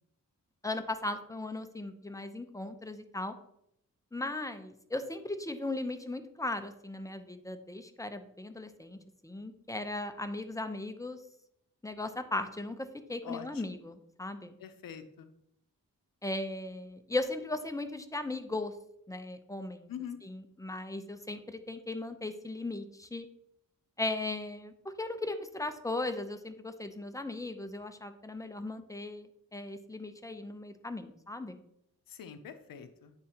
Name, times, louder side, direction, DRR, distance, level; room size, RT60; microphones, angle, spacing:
voice 1, 0.6-3.3 4.1-11.2 11.8-14.5 16.2-18.7 19.1-19.9 20.2-23.3 24.0-31.6, left 2 dB, 10° left, 8 dB, 0.6 m, -37 dB
voice 2, 13.2-13.6 14.6-15.3 19.9-20.2 32.1-33.1, left 8 dB, 90° left, 9 dB, 0.6 m, -44 dB
9.0 x 3.8 x 2.9 m, 0.76 s
cardioid pair, 55°, 33 cm